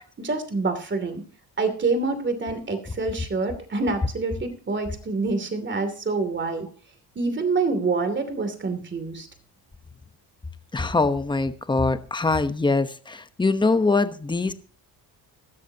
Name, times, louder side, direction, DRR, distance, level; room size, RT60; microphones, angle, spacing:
voice 1, 0.2-1.2 1.6-6.7 7.2-9.3, right 3 dB, 30° right, 8 dB, 2.7 m, -26 dB
voice 2, 10.7-14.5, left 3 dB, 10° left, 10 dB, 1.0 m, -23 dB
17.5 x 13.0 x 2.9 m, 0.39 s
cardioid pair, 135°, 40 cm